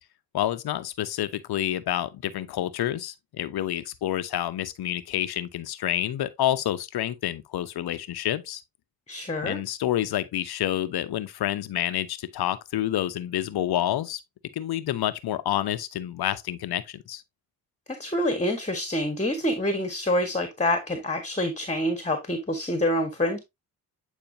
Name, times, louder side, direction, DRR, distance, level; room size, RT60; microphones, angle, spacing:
voice 1, 0.3-8.6 9.4-14.2 14.5-17.2, left 12 dB, 60° left, 1.0 m, -28 dB
voice 2, 9.1-9.6 17.9-23.4, left 1 dB, 15° left, 1.6 m, -26 dB
9.2 x 4.4 x 2.8 m
hypercardioid pair, 45°, 43 cm